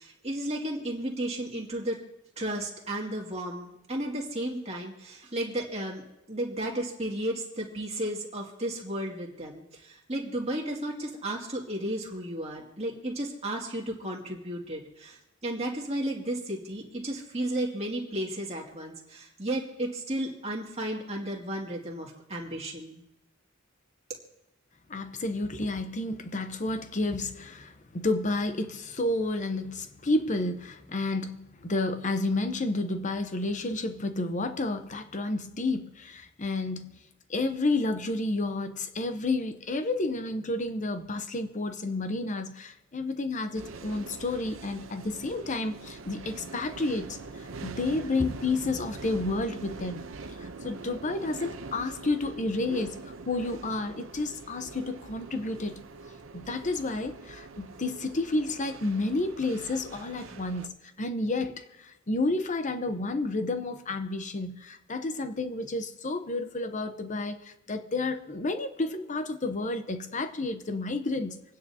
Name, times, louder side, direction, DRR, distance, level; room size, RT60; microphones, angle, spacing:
voice 1, 0.0-2.0 2.4-6.0 6.3-23.0, right 1 dB, 30° right, 2.3 m, -33 dB
voice 2, 24.9-47.2 47.6-50.1 50.4-55.8 56.3-71.4, left 2 dB, 40° left, 0.8 m, -31 dB
sound 1, 43.5-60.7, right 3 dB, 70° right, 0.8 m, -43 dB
27.5 x 9.6 x 2.8 m
head